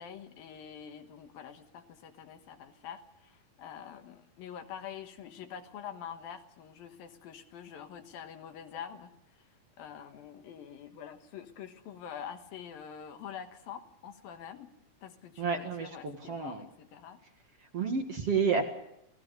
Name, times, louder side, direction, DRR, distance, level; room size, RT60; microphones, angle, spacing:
voice 1, 0.0-9.1 9.4-9.5 9.8-14.7 15.0-17.2, left 8 dB, 75° left, 6 dB, 3.2 m, -46 dB
voice 2, 15.4-16.6 17.7-18.6, right 5 dB, 50° right, 4 dB, 2.3 m, -30 dB
29.0 x 18.0 x 6.7 m, 0.79 s
omnidirectional pair, 4.3 m